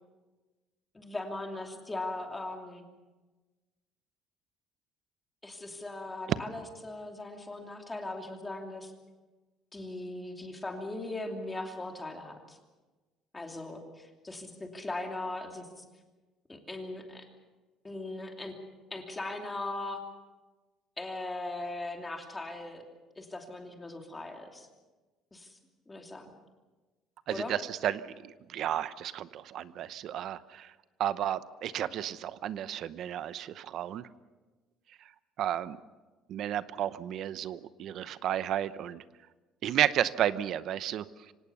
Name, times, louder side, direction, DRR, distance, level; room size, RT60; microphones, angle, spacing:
voice 1, 0.9-2.8 5.4-8.9 9.7-12.6 13.3-15.8 16.5-17.3 17.8-18.5 18.9-20.0 21.0-22.8 23.2-24.7 25.3-25.6 25.9-26.3 27.3-27.5, left 2 dB, 15° left, 3 dB, 2.8 m, -39 dB
voice 2, 27.3-30.7 31.0-34.1 35.4-35.8 36.3-39.0 39.6-41.3, right 11 dB, 55° right, 15 dB, 0.8 m, -32 dB
25.0 x 18.0 x 6.9 m, 1.2 s
cardioid pair, 145°, 0 cm